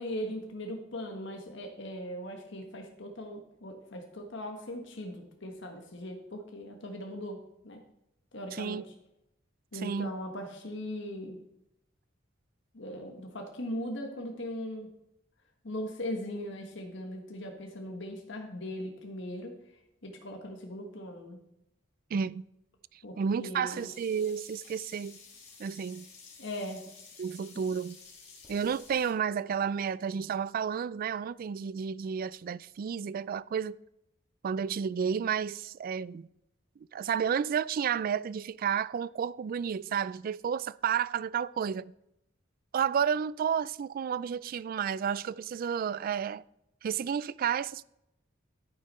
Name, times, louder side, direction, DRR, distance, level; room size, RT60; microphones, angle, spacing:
voice 1, 0.0-7.4 7.6-7.8 8.3-8.8 9.7-11.4 12.7-14.9 15.6-19.5 20.0-21.4 23.0-23.9 26.4-26.8, left 1 dB, 65° left, 1.5 m, -39 dB
voice 2, 8.5-8.8 9.7-10.2 22.1-22.4 23.2-25.2 25.6-26.1 27.2-28.0 28.5-33.8 34.4-36.3 36.9-41.9 42.7-46.4 46.8-47.8, right 7 dB, 45° right, 0.3 m, -31 dB
Sink (filling or washing), 23.7-29.1, left 4 dB, 35° left, 2.8 m, -52 dB
11.0 x 8.8 x 4.3 m
head